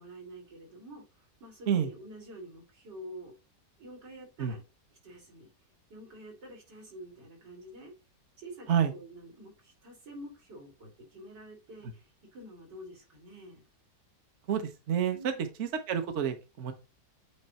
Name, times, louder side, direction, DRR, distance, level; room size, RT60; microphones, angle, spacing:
voice 1, 0.0-3.4 3.8-4.6 5.0-5.5 5.9-7.9 8.4-13.6 15.1-15.5, right 1 dB, 85° right, 3.6 m, -48 dB
voice 2, 15.6-16.7, right 8 dB, 50° right, 1.1 m, -28 dB
8.9 x 3.3 x 4.1 m
omnidirectional pair, 1.9 m